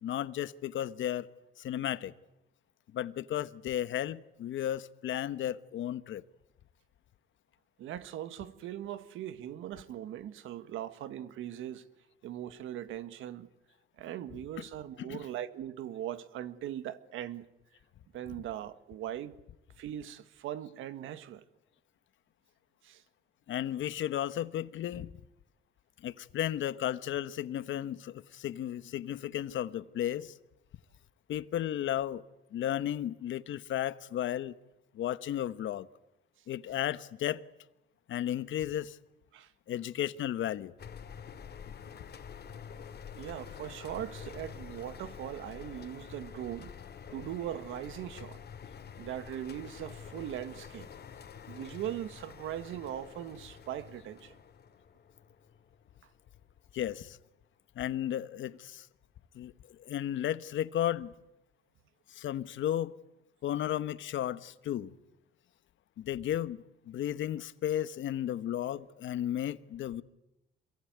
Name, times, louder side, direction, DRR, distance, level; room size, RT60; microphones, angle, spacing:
voice 1, 0.0-1.3 1.6-2.1 2.9-6.2 14.3-14.7 15.0-15.3 23.5-25.1 26.0-30.3 31.3-32.2 32.5-34.5 34.9-35.9 36.5-37.4 38.1-39.0 39.7-40.7 56.7-57.2 57.7-58.9 59.3-61.1 62.1-62.9 63.4-64.9 66.0-70.0, left 11 dB, 75° left, 1.2 m, -34 dB
voice 2, 7.8-11.9 12.2-13.5 14.0-17.4 18.1-19.3 19.8-21.4 22.8-23.0 39.3-39.5 41.9-42.0 43.1-46.7 47.1-48.4 49.0-50.9 51.5-54.3, right 11 dB, 85° right, 1.7 m, -40 dB
sound 1, 40.8-56.2, left 7 dB, 55° left, 2.5 m, -48 dB
26.5 x 22.5 x 9.5 m
cardioid pair, 90°, 20 cm